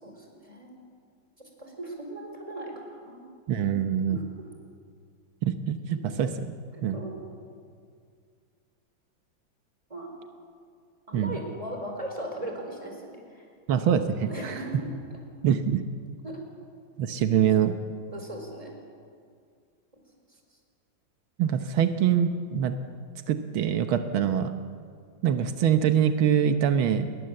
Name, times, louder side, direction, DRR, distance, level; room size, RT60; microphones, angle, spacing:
voice 1, 0.0-0.8 1.6-2.7 3.0-3.3 4.1-4.2 6.7-7.2 9.9-10.1 11.1-13.4 14.2-14.9 16.2-16.4 18.1-18.7 24.0-24.2, right 1 dB, 15° right, 2 dB, 4.7 m, -38 dB
voice 2, 3.5-4.2 5.4-6.5 6.8-7.0 11.1-11.4 13.7-14.6 15.4-15.8 17.0-17.8 21.4-22.7 23.3-24.6 25.2-27.1, right 8 dB, 90° right, 8 dB, 1.8 m, -24 dB
28.5 x 20.5 x 7.7 m, 2.2 s
omnidirectional pair, 2.2 m